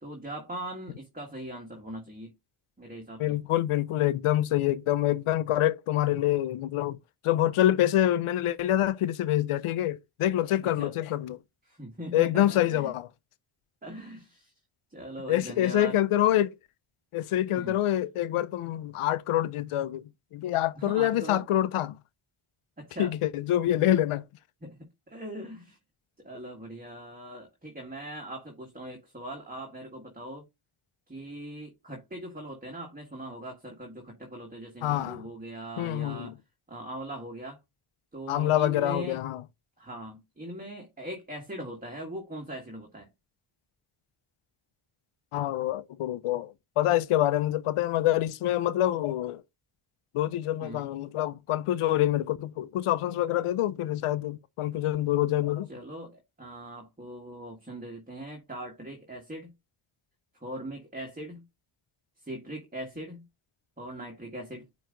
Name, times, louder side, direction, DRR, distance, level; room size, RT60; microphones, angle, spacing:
voice 1, 0.0-2.3 2.8-3.4 10.6-10.9 11.7-12.9 13.8-14.5 14.9-16.0 17.5-17.8 20.8-21.5 22.8-23.2 24.6-25.8 26.2-30.4 31.1-36.3 36.7-37.6 38.1-39.2 39.8-43.1 50.6-50.9 55.7-59.5 60.4-61.4 62.2-63.2 63.8-64.6, right 1 dB, 15° right, 1.7 m, -40 dB
voice 2, 3.2-7.0 7.2-11.4 12.1-13.1 15.3-16.5 17.1-20.0 20.3-21.9 23.0-24.2 34.8-35.2 35.8-36.3 38.3-39.4 45.3-49.4 50.1-55.7, left 13 dB, 90° left, 0.6 m, -26 dB
9.1 x 3.1 x 3.8 m
cardioid pair, 90°, 49 cm